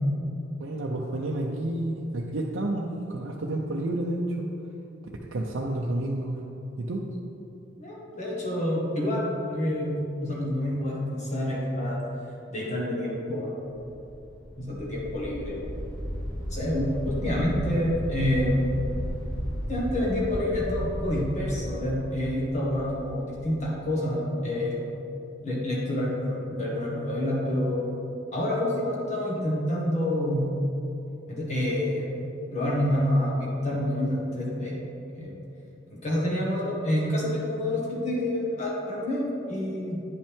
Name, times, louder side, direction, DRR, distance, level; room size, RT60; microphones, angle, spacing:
voice 1, 0.6-4.5 5.3-6.4 6.8-7.0, right 1 dB, 75° right, -1 dB, 0.5 m, -30 dB
voice 2, 7.8-9.9 10.2-12.0 12.5-13.5 14.6-15.6 16.5-18.6 19.7-24.8 25.4-27.9 28.3-30.4 31.3-34.8 35.1-35.4 35.9-40.0, left 1 dB, 35° left, -5 dB, 1.7 m, -28 dB
sound 1, 13.7-23.6, equal, 65° left, 1.2 m, -35 dB
9.6 x 5.3 x 3.5 m, 2.9 s
head